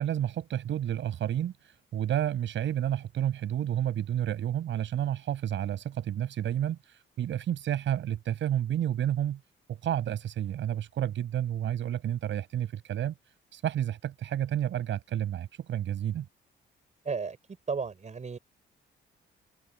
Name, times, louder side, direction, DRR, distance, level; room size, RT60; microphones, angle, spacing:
voice 1, 0.0-9.4 9.7-13.1 13.5-16.3, right 11 dB, 70° right, 5.7 m, -30 dB
voice 2, 17.1-17.4 17.7-18.4, right 5 dB, 35° right, 5.9 m, -33 dB
open air
cardioid pair, 90°, 20 cm